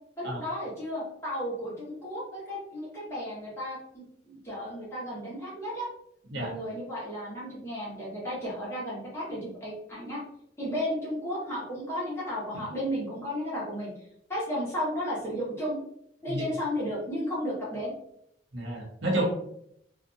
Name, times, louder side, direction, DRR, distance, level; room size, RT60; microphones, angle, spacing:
voice 1, 0.2-5.9 6.3-10.2 10.6-13.9 14.3-15.8 16.2-17.9 19.2-19.3, equal, 15° left, -8 dB, 1.0 m, -33 dB
voice 2, 18.5-19.2, right 1 dB, 75° right, -2 dB, 0.8 m, -30 dB
2.6 x 2.4 x 2.5 m, 0.72 s
head